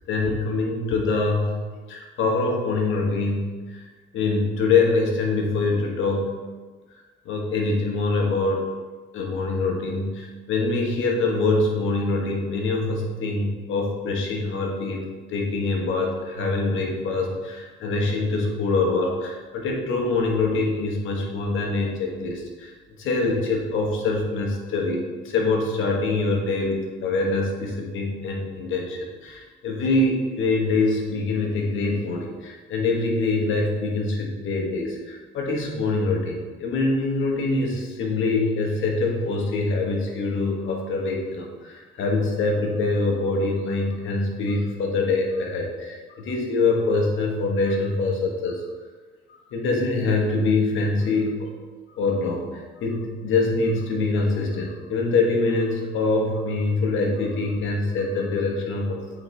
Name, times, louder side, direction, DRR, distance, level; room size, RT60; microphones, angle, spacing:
voice 1, 0.1-1.6 1.9-3.8 4.1-6.3 7.2-8.7 9.1-22.7 23.0-48.6 49.3-51.5 51.9-59.0, left 3 dB, 80° left, 0 dB, 1.2 m, -24 dB
8.5 x 4.0 x 3.2 m, 1.4 s
cardioid pair, 90°, 20 cm